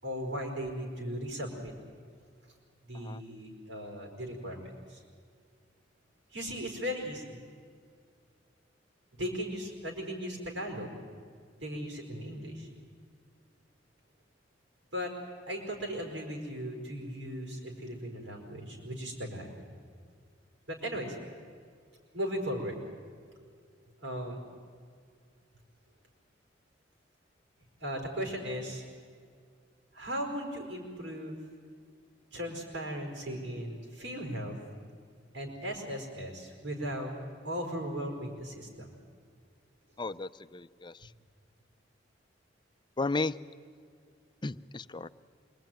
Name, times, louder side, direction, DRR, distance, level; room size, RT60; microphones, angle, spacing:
voice 1, 0.0-1.7 2.8-5.0 6.3-7.4 9.2-11.0 11.6-12.7 14.9-15.1 15.5-19.6 20.7-21.2 22.1-22.8 24.0-24.4 27.8-28.8 29.9-31.4 32.3-34.6 35.3-37.1 37.4-38.9, equal, 90° right, 1 dB, 5.0 m, -37 dB
voice 2, 40.0-41.1 43.0-43.4 44.4-45.1, left 3 dB, 25° left, 12 dB, 0.6 m, -34 dB
26.5 x 22.0 x 9.3 m, 2.2 s
head